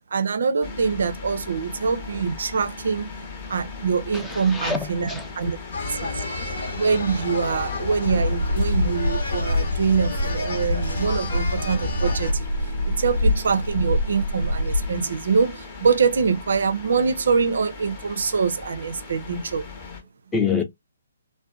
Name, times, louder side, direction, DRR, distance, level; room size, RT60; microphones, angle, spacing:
voice 1, 0.1-3.1 3.5-6.2 6.7-19.7, right 5 dB, 60° right, 0.4 m, -24 dB
sound 1, 0.6-20.0, left 3 dB, 30° left, 0.8 m, -39 dB
voice 2, 4.1-5.3 20.3-20.6, left 5 dB, 10° left, 0.4 m, -26 dB
sound 2, 5.7-12.3, left 3 dB, 60° left, 1.0 m, -31 dB
sound 3, 8.0-15.0, left 1 dB, 90° left, 0.4 m, -25 dB
2.5 x 2.1 x 2.4 m
figure-of-eight pair, 135°, 0 cm